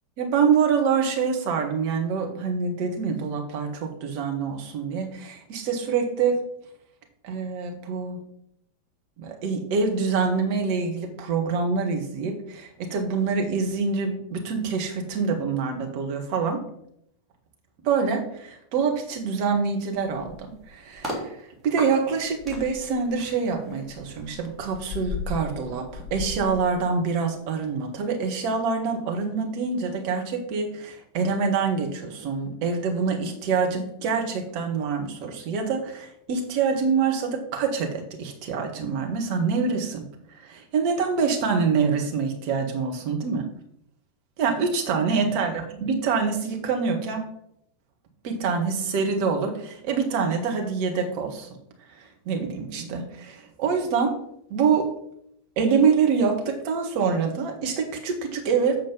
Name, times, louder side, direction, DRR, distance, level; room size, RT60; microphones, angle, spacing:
voice 1, 0.2-6.4 7.2-8.2 9.2-16.6 17.8-21.4 21.6-40.0 40.4-43.5 44.4-47.2 48.2-51.5 52.3-54.1 54.5-54.9 55.6-58.8, right 5 dB, 45° right, 2 dB, 1.8 m, -25 dB
sound 1, 20.0-21.2 21.8-27.3 27.7-27.9, left 2 dB, 5° right, 2.9 m, -37 dB
7.8 x 5.0 x 5.4 m, 0.74 s
figure-of-eight pair, 90°, 0 cm